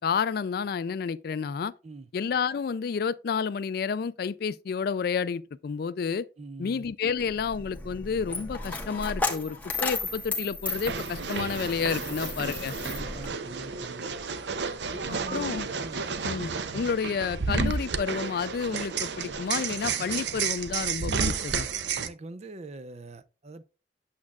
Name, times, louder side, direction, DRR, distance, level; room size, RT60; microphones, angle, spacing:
voice 1, 0.0-1.7 2.1-6.3 6.6-12.7 15.1-15.7 16.2-21.7, left 6 dB, 55° left, 0.3 m, -30 dB
voice 2, 6.4-6.9 11.9-12.1 12.4-12.5 12.8-14.1 14.9-16.0 22.0-23.7, right 2 dB, 35° right, 0.5 m, -43 dB
Coin (dropping), 7.2-13.3, left 3 dB, 10° left, 1.2 m, -34 dB
sound 1, 10.7-22.1, right 5 dB, 75° right, 0.6 m, -31 dB
8.5 x 7.2 x 2.3 m
head